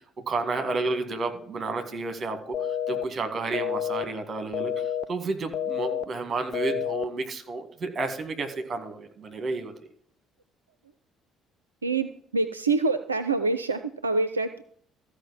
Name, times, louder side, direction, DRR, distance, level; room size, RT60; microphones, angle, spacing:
voice 1, 0.3-9.7, right 3 dB, 35° right, 6 dB, 1.9 m, -31 dB
sound 1, 2.5-3.0 3.5-4.0 4.5-5.0 5.5-6.0 6.5-7.0, left 9 dB, 40° left, 0.5 m, -29 dB
voice 2, 11.8-14.6, right 3 dB, 80° right, 10 dB, 0.3 m, -26 dB
14.0 x 5.0 x 7.3 m, 0.63 s
figure-of-eight pair, 50°, 0 cm